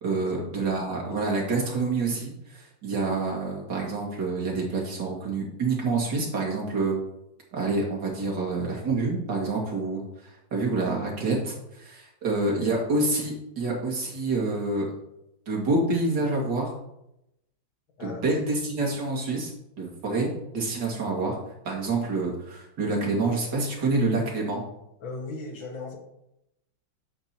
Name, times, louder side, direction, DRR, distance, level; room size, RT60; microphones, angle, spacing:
voice 1, 0.0-7.0 7.5-14.9 15.5-16.7 18.0-19.5 19.8-21.4 21.6-24.6, right 3 dB, 65° right, -2 dB, 2.8 m, -27 dB
voice 2, 25.0-26.0, left 3 dB, 80° left, 1 dB, 2.5 m, -37 dB
10.5 x 7.9 x 2.9 m, 0.84 s
omnidirectional pair, 2.1 m